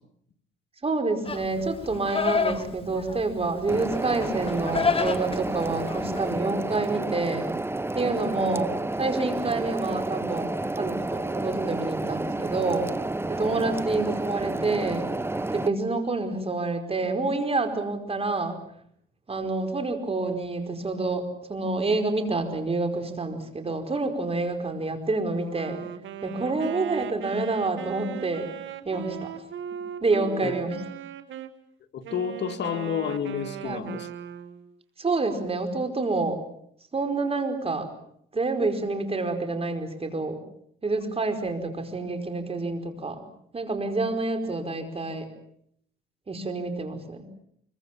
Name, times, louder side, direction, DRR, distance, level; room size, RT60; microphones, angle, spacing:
voice 1, 0.8-7.5 7.9-12.9 13.3-15.1 15.5-18.6 19.3-21.2 21.5-25.8 26.2-28.5 28.8-29.4 30.0-30.8 33.6-33.9 35.0-36.4 36.9-37.9 38.3-40.4 40.8-43.2 43.5-45.3 46.3-47.3, right 3 dB, 30° right, 6 dB, 4.9 m, -28 dB
Livestock farm animals working animals, 1.3-6.4, left 5 dB, 30° left, 1.7 m, -30 dB
sound 1, 3.7-15.7, right 2 dB, 10° right, 1.1 m, -30 dB
Wind instrument woodwind instrument, 25.4-31.5 32.0-34.7, right 9 dB, 75° right, 2.2 m, -38 dB
voice 2, 31.9-34.1, left 8 dB, 60° left, 7 dB, 2.1 m, -30 dB
25.0 x 23.5 x 7.5 m, 0.68 s
cardioid pair, 90°, 20 cm